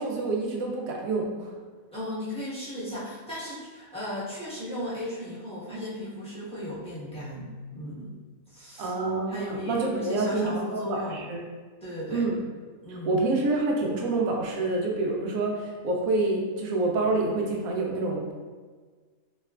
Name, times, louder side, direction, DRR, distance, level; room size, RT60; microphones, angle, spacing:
voice 1, 0.0-1.5 8.8-11.4 12.1-12.4 12.9-18.3, right 2 dB, 90° right, 0 dB, 1.1 m, -27 dB
voice 2, 1.9-8.1 8.5-8.9 9.3-11.2 11.8-12.2 12.8-13.1, left 1 dB, 5° left, -11 dB, 0.9 m, -36 dB
3.2 x 2.9 x 2.3 m, 1.5 s
omnidirectional pair, 1.4 m